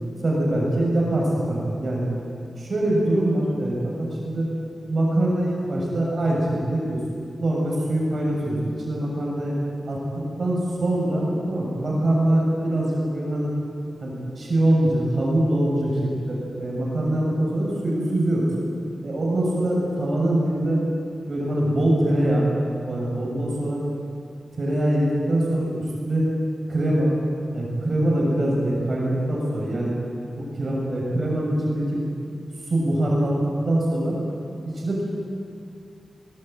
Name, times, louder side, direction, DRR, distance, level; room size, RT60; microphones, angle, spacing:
voice 1, 0.2-2.1 2.6-4.5 4.9-7.0 7.4-8.6 8.9-9.6 9.9-10.0 10.4-13.5 14.0-18.5 19.0-20.8 21.3-22.5 22.9-23.8 24.5-26.2 26.7-27.1 27.5-29.9 30.3-32.0 32.7-33.4 33.6-34.2 34.7-35.0, right 1 dB, 50° right, -3 dB, 7.0 m, -23 dB
22.5 x 21.5 x 9.3 m, 2.5 s
wide cardioid pair, 135°, 0 cm